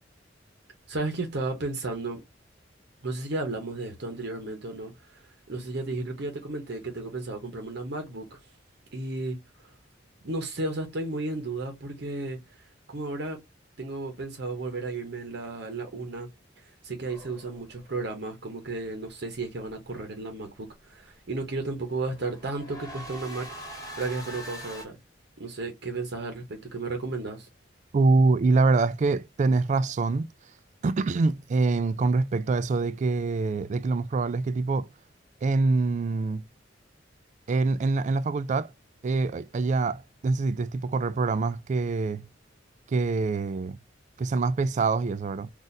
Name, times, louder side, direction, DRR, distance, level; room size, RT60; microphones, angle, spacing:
voice 1, 0.9-2.2 3.0-5.2 5.5-8.4 8.9-9.7 10.2-12.4 12.9-13.4 13.8-16.3 16.6-25.0 25.4-27.5, right 2 dB, 60° right, 0.9 m, -33 dB
sound 1, 17.1-18.0 21.7-24.9, equal, 20° left, 1.6 m, -42 dB
voice 2, 27.9-30.3 30.8-34.9 35.4-36.4 37.5-38.7 39.0-42.2 42.9-43.8 44.2-45.5, right 3 dB, 40° right, 0.3 m, -25 dB
4.1 x 2.5 x 2.5 m
head